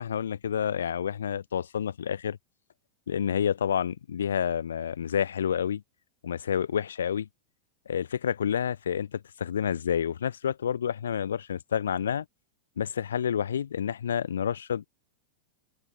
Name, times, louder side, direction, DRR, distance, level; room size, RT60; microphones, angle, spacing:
voice 1, 0.0-2.4 3.1-5.8 6.2-7.3 7.9-12.3 12.8-14.8, left 8 dB, 65° left, 7.2 m, -29 dB
open air
figure-of-eight pair, 90°, 0 cm